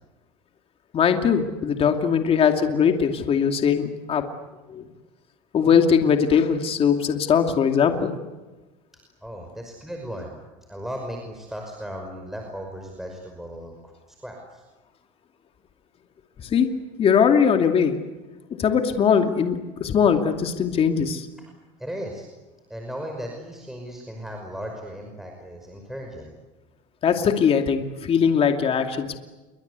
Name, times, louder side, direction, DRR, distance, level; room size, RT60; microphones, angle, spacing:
voice 1, 0.9-4.2 4.7-4.8 5.5-8.1 16.4-16.7 17.0-18.0 18.5-21.3 27.0-29.2, left 7 dB, 35° left, 5 dB, 2.6 m, -20 dB
voice 2, 9.2-10.4 10.7-13.9 14.2-14.6 21.8-22.3 22.7-26.3, equal, ahead, 2 dB, 5.5 m, -36 dB
29.0 x 24.0 x 8.3 m, 1.2 s
supercardioid pair, 110°, 16 cm